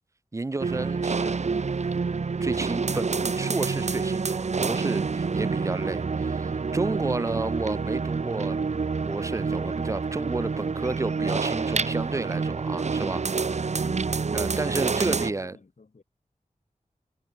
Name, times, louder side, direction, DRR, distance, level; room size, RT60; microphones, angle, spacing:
voice 1, 0.3-1.4 2.4-8.8 9.1-13.6 14.3-15.5, right 3 dB, 20° right, 0.4 m, -31 dB
sound 1, 0.6-15.3, right 4 dB, 55° right, 0.8 m, -28 dB
voice 2, 5.3-5.6 6.7-7.1 13.8-16.0, left 3 dB, 60° left, 5.7 m, -50 dB
wide cardioid pair, 80°, 14 cm